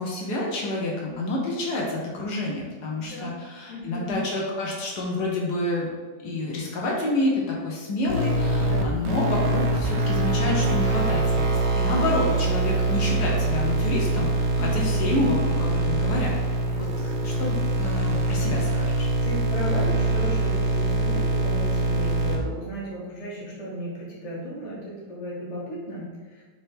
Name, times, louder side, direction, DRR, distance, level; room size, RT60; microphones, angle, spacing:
voice 1, 0.0-5.9 6.2-16.3 16.8-19.1, left 2 dB, 70° left, -3 dB, 1.3 m, -28 dB
voice 2, 3.0-3.3 3.7-4.2 8.6-9.1 14.5-14.9 16.8-16.9 19.2-26.4, equal, 30° left, -5 dB, 0.7 m, -35 dB
sound 1, 8.1-22.4, right 2 dB, 70° right, 0.9 m, -24 dB
4.4 x 2.8 x 3.3 m, 1.4 s
omnidirectional pair, 1.9 m